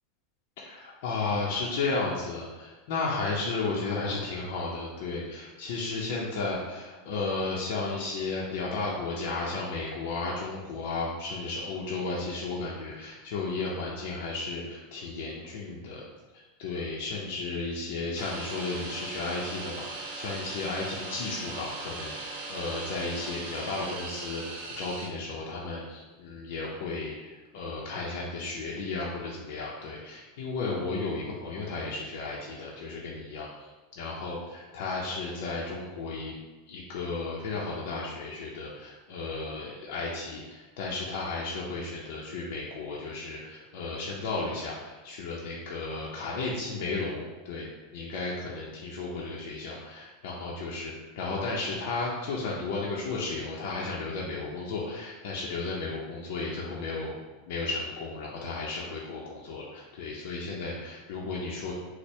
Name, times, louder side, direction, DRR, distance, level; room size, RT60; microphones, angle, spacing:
voice 1, 0.6-16.0 16.6-33.7 34.0-36.4 36.7-47.7 47.9-57.2 57.4-61.7, left 3 dB, 65° left, -4 dB, 0.6 m, -34 dB
sound 1, 18.2-25.1, right 3 dB, 70° right, 0.8 m, -39 dB
4.3 x 2.1 x 3.1 m, 1.2 s
supercardioid pair, 145°, 0 cm